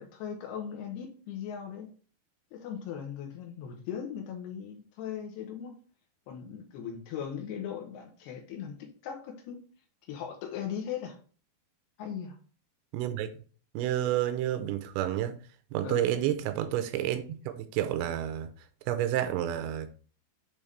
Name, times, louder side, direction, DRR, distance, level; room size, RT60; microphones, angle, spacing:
voice 1, 0.0-1.9 2.5-5.8 6.3-9.6 10.1-11.2 12.0-12.4 15.8-16.1, left 8 dB, 75° left, 2.7 m, -38 dB
voice 2, 12.9-13.3 13.7-15.4 15.7-18.5 18.9-19.9, right 12 dB, 85° right, 2.8 m, -30 dB
8.4 x 3.5 x 3.3 m
omnidirectional pair, 5.1 m